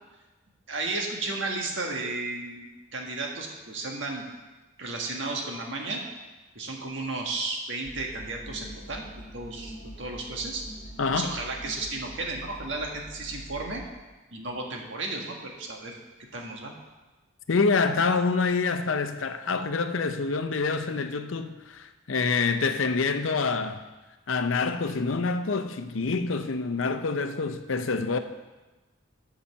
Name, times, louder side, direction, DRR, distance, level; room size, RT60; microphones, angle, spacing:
voice 1, 0.7-4.2 4.8-6.0 6.5-10.6 11.1-13.8 14.3-15.9 16.3-16.7, right 3 dB, 65° right, 1.6 m, -33 dB
sound 1, 7.8-13.9, equal, 40° left, 1.5 m, -44 dB
voice 2, 11.0-11.3 17.5-23.8 24.3-28.2, left 4 dB, 80° left, 0.6 m, -26 dB
8.5 x 5.7 x 6.9 m
head